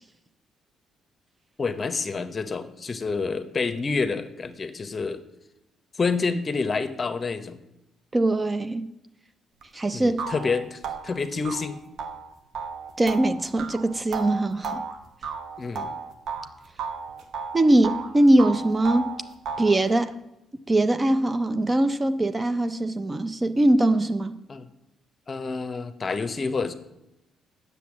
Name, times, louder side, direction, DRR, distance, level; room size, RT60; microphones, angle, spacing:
voice 1, 1.6-5.2 5.9-7.6 9.9-11.8 15.6-16.0 24.5-24.7 25.3-26.7, left 4 dB, 35° left, 11 dB, 0.9 m, -28 dB
voice 2, 8.1-8.9 9.7-10.2 13.0-14.8 17.5-19.1 19.6-20.1 20.7-24.4, right 1 dB, 25° right, 11 dB, 0.6 m, -22 dB
sound 1, 9.6-9.7 10.2-16.5 16.8-18.1 18.4-19.8, right 5 dB, 70° right, 1.1 m, -34 dB
8.3 x 6.9 x 7.1 m, 0.90 s
cardioid pair, 90°, 0 cm